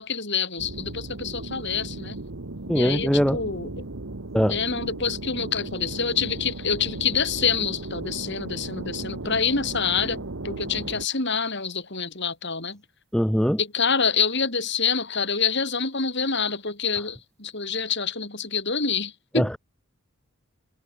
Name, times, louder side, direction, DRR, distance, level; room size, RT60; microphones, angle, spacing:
voice 1, 0.0-2.2 2.7-3.7 4.5-12.8 13.6-19.6, left 5 dB, 50° left, 5.1 m, -27 dB
sound 1, 0.6-11.0, right 2 dB, 70° right, 1.4 m, -36 dB
voice 2, 2.7-3.4 4.3-4.6 13.1-13.6 19.3-19.6, equal, 5° left, 1.9 m, -21 dB
head